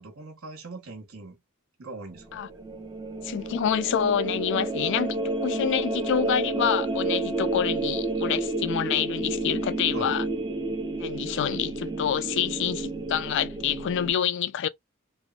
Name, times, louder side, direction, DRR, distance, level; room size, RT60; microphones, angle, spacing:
voice 1, 0.0-1.4 1.8-2.4 9.9-10.2, right 3 dB, 75° right, 1.1 m, -41 dB
sound 1, 2.2-14.1, right 2 dB, 20° right, 0.5 m, -30 dB
voice 2, 3.2-10.3 11.0-14.7, left 9 dB, 60° left, 0.3 m, -27 dB
3.3 x 2.1 x 2.3 m
head